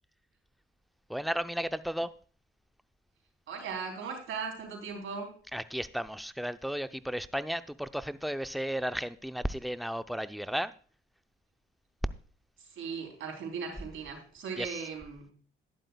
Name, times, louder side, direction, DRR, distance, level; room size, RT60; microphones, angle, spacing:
voice 1, 1.1-2.1 5.5-10.7 14.6-14.8, equal, ahead, 0.6 m, -34 dB
voice 2, 3.5-5.4 12.7-15.3, right 5 dB, 70° right, 3.7 m, -38 dB
13.0 x 11.0 x 2.3 m
supercardioid pair, 60°, 21 cm